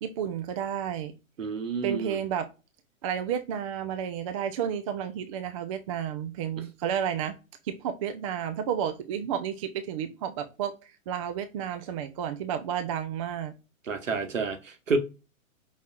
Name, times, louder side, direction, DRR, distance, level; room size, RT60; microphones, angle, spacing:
voice 1, 0.0-1.1 1.8-2.5 3.0-7.3 7.6-13.5, right 9 dB, 25° right, 0.5 m, -31 dB
voice 2, 1.4-2.2 13.9-15.0, right 4 dB, 70° right, 1.2 m, -29 dB
5.6 x 4.1 x 2.3 m
figure-of-eight pair, 115°, 41 cm